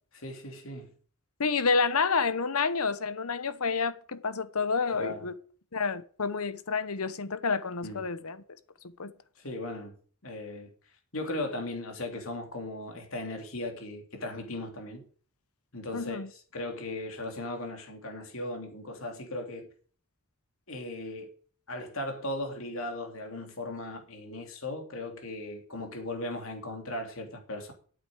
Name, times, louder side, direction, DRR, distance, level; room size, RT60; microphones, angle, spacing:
voice 1, 0.1-0.9 4.9-5.3 7.8-8.0 9.4-9.9 10.2-10.7 11.1-15.0 15.7-16.2 16.5-19.7 20.7-21.3 21.7-27.7, left 1 dB, 65° left, 3.2 m, -37 dB
voice 2, 1.4-5.4 5.7-8.4 9.0-9.1 15.9-16.3, left 5 dB, 80° left, 1.0 m, -29 dB
9.0 x 7.8 x 8.9 m
head